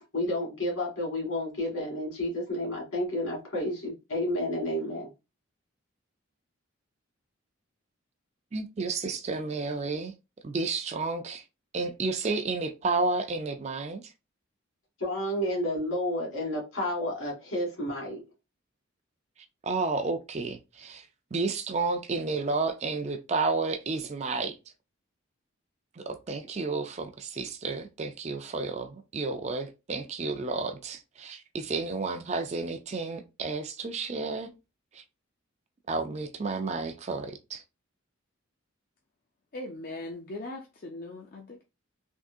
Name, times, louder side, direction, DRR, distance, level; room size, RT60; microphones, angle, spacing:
voice 1, 0.1-5.1 15.0-18.2, left 1 dB, 75° left, 1.9 m, -31 dB
voice 2, 8.5-10.1 10.4-11.4 11.7-14.0 19.6-21.0 21.3-24.6 26.0-34.5 34.9-35.0 35.9-37.6, right 3 dB, 30° right, 0.4 m, -31 dB
voice 3, 39.5-41.6, left 2 dB, 45° left, 0.4 m, -39 dB
3.6 x 2.7 x 2.6 m
head